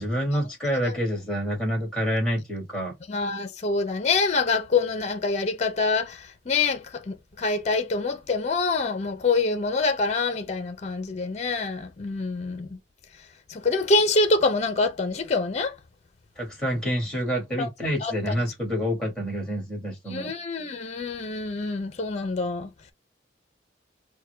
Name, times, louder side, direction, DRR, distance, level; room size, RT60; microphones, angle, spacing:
voice 1, 0.0-2.9 16.4-20.3, equal, 5° left, 2.1 m, -27 dB
voice 2, 3.1-12.8 13.5-15.7 17.6-17.7 18.0-18.3 20.1-22.7, left 3 dB, 35° left, 0.6 m, -26 dB
4.5 x 2.2 x 3.3 m
head